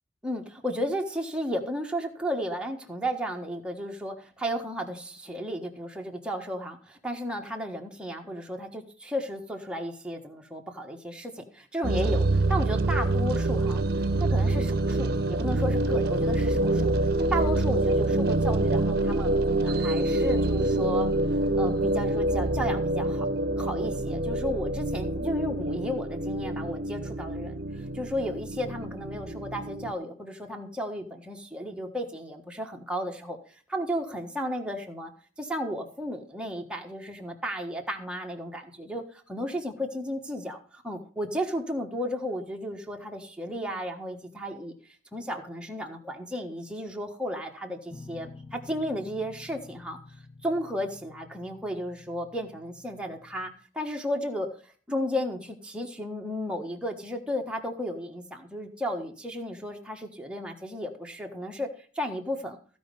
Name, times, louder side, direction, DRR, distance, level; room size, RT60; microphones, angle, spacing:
voice 1, 0.2-13.8 14.2-21.1 21.6-23.3 23.6-33.4 33.7-35.1 35.4-44.7 45.1-50.0 50.4-54.5 54.9-61.7 61.9-62.6, equal, 5° right, 1 dB, 1.4 m, -34 dB
sound 1, 11.8-29.9, right 2 dB, 55° right, 0.7 m, -26 dB
sound 2, 47.9-53.5, left 3 dB, 10° left, 2.1 m, -49 dB
15.5 x 5.3 x 5.3 m, 0.42 s
head